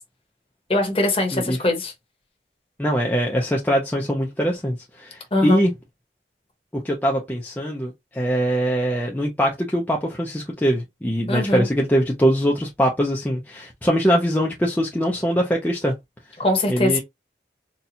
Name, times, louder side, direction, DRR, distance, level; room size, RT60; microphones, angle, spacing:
voice 1, 0.7-1.9 5.3-5.6 11.3-11.7 16.4-17.0, left 2 dB, 30° left, 1.0 m, -21 dB
voice 2, 2.8-5.7 6.8-15.9 16.7-17.0, equal, 10° left, 0.5 m, -22 dB
4.1 x 2.3 x 2.7 m
head